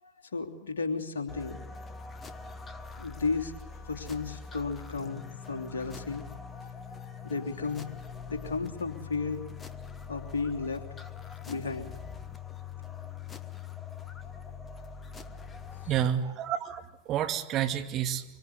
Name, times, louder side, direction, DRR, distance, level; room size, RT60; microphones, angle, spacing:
voice 1, 0.0-1.6 3.0-3.5 3.8-6.2 7.2-7.9 8.3-9.4 10.1-10.8 11.5-11.9, left 4 dB, 65° left, 4 dB, 3.2 m, -33 dB
sound 1, 1.3-16.1, left 6 dB, 20° left, 1.5 m, -43 dB
voice 2, 15.9-18.3, right 10 dB, 35° right, 5 dB, 2.4 m, -30 dB
25.5 x 24.5 x 8.4 m, 1.0 s
figure-of-eight pair, 90°, 0 cm